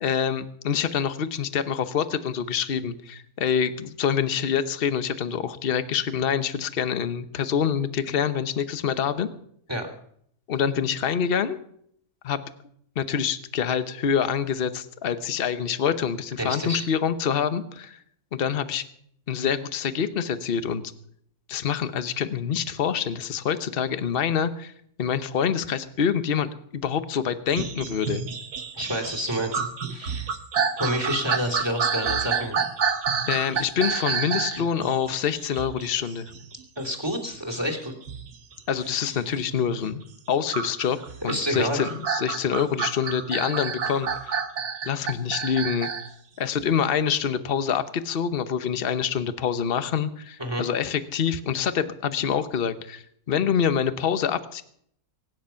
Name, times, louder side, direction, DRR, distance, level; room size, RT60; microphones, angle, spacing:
voice 1, 0.0-9.3 10.5-11.6 12.2-12.4 13.0-18.0 18.3-18.8 19.3-20.8 21.5-24.7 25.0-28.2 33.3-36.3 38.7-41.0 41.2-44.4 44.8-45.9 46.4-54.6, left 7 dB, 40° left, 11 dB, 1.1 m, -26 dB
voice 2, 16.4-16.9 28.7-29.6 29.9-30.3 30.8-32.6 36.8-37.9 38.9-39.1 41.2-41.9 50.4-50.6, equal, 15° right, 4 dB, 2.9 m, -28 dB
sound 1, 27.5-39.9 40.5-46.1 46.6-46.7, right 6 dB, 80° right, 1.9 m, -29 dB
24.0 x 10.5 x 5.7 m, 0.68 s
omnidirectional pair, 1.6 m